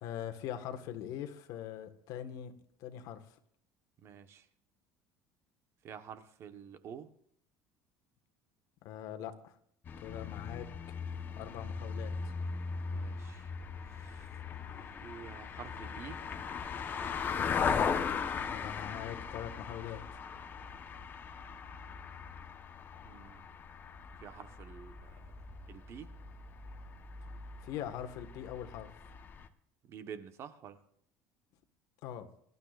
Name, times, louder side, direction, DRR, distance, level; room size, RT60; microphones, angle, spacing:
voice 1, 0.0-2.5 2.8-3.2 8.8-9.5 10.0-10.7 11.4-12.3 17.6-17.8 18.5-20.0 27.6-28.9 32.0-32.3, left 10 dB, 65° left, 7 dB, 1.5 m, -42 dB
voice 2, 4.0-4.5 5.8-7.1 12.9-13.5 13.9-14.3 14.7-16.2 23.0-23.5 24.2-25.3 25.7-26.1 29.8-30.8, right 7 dB, 45° right, 9 dB, 1.2 m, -49 dB
sound 1, 9.8-29.5, left 6 dB, 30° left, 1.1 m, -39 dB
24.0 x 12.0 x 2.5 m, 0.67 s
cardioid pair, 135°, 6 cm